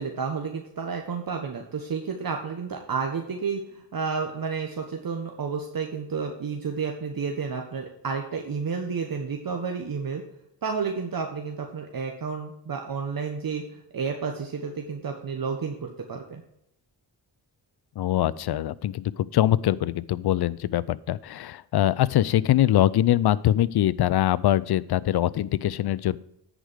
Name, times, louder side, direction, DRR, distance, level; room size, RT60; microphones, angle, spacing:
voice 1, 0.0-10.2 10.6-16.4, right 5 dB, 50° right, 3 dB, 1.4 m, -31 dB
voice 2, 18.0-26.2, left 13 dB, 60° left, 20 dB, 0.5 m, -23 dB
9.9 x 5.1 x 6.3 m, 0.77 s
cardioid pair, 65°, 44 cm